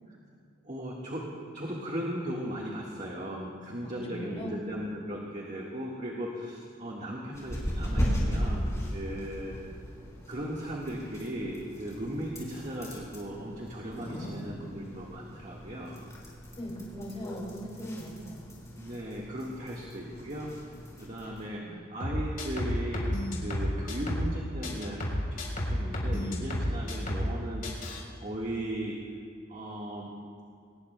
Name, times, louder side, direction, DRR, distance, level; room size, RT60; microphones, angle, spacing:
voice 1, 0.6-9.6 10.3-16.0 18.8-20.5 21.0-25.4 25.7-27.8 28.2-29.0 29.5-30.1, right 1 dB, 40° right, -3 dB, 1.6 m, -37 dB
voice 2, 3.9-4.5 16.6-18.5 21.6-21.8, equal, 30° left, -1 dB, 2.6 m, -39 dB
sound 1, 7.3-21.5, equal, 15° left, 4.0 m, -37 dB
sound 2, 22.0-24.4 24.6-27.4 27.6-28.0, equal, 50° left, 3.8 m, -31 dB
22.5 x 20.0 x 2.2 m, 2.5 s
head